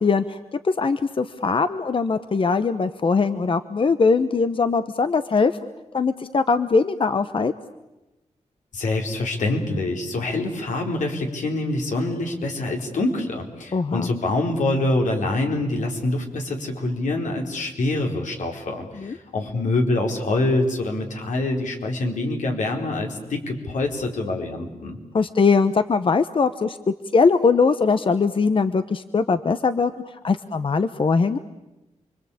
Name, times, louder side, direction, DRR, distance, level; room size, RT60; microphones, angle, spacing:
voice 1, 0.0-5.5 5.9-7.5 13.7-14.1 19.0-19.2 25.1-26.8 27.1-29.9 30.2-31.4, left 4 dB, 45° left, 11 dB, 1.0 m, -21 dB
voice 2, 8.7-25.0, left 2 dB, 85° left, 2 dB, 4.5 m, -25 dB
29.0 x 23.0 x 8.7 m, 1.0 s
wide cardioid pair, 105°, 13 cm